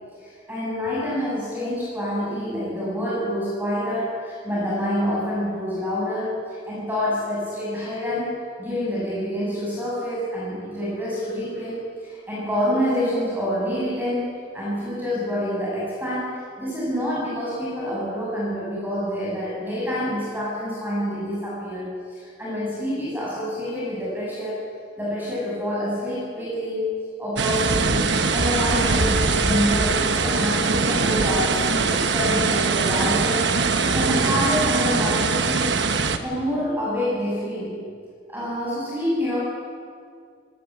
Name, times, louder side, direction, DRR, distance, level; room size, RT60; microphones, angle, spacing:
voice 1, 0.2-8.3 8.6-14.3 14.5-24.6 25.0-35.8 36.2-37.8 38.3-39.4, equal, 10° right, -7 dB, 7.2 m, -27 dB
sound 1, 27.4-36.2, right 4 dB, 70° right, 1.1 m, -22 dB
18.0 x 17.0 x 8.9 m, 2.2 s
head